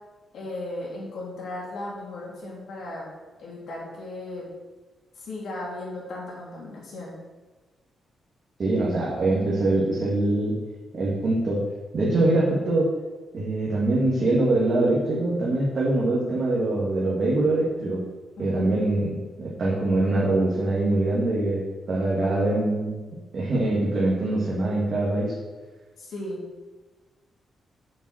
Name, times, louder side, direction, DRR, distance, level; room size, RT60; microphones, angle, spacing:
voice 1, 0.3-3.1 3.4-4.5 5.1-7.2 18.4-18.7 26.0-26.4, left 2 dB, 60° left, -4 dB, 3.4 m, -36 dB
voice 2, 8.6-10.5 10.9-11.6 11.9-12.9 13.3-18.0 18.4-21.6 21.9-22.9 23.3-25.3, right 2 dB, 35° right, -6 dB, 1.9 m, -23 dB
7.2 x 6.9 x 6.3 m, 1.2 s
wide cardioid pair, 180°, 0 cm